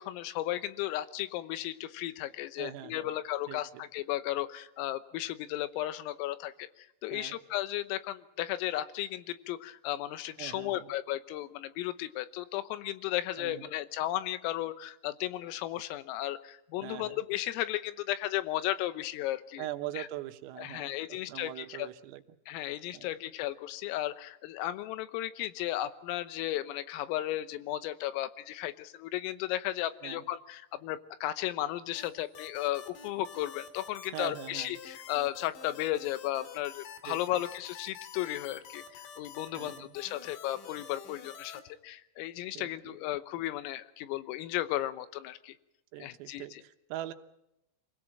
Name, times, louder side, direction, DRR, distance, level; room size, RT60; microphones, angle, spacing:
voice 1, 0.0-19.7 20.0-20.1 20.6-21.9 22.5-45.6 46.0-46.6, left 14 dB, 85° left, 13 dB, 3.6 m, -35 dB
voice 2, 2.6-3.1 3.5-3.8 7.1-7.4 10.4-10.9 13.4-13.7 16.8-17.2 19.6-22.4 22.9-23.1 30.0-30.3 34.1-34.8 37.1-37.4 39.5-40.0 42.6-43.0 45.9-47.1, right 14 dB, 90° right, 7 dB, 3.9 m, -42 dB
sound 1, 31.9-41.6, left 7 dB, 65° left, 4.0 m, -48 dB
26.5 x 17.5 x 7.7 m, 0.88 s
omnidirectional pair, 5.9 m